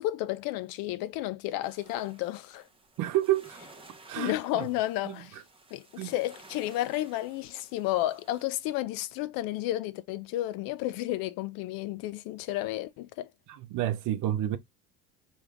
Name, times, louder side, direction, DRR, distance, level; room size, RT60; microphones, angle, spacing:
voice 1, 0.0-2.6 4.2-5.4 5.7-13.3, left 15 dB, 55° left, 0.5 m, -32 dB
sound 1, 1.6-8.5, right 3 dB, 15° right, 1.0 m, -55 dB
voice 2, 3.0-3.6 4.1-4.7 5.1-5.2 6.0-6.1 13.5-14.6, right 13 dB, 50° right, 0.7 m, -29 dB
3.3 x 3.2 x 2.4 m
hypercardioid pair, 70°, 41 cm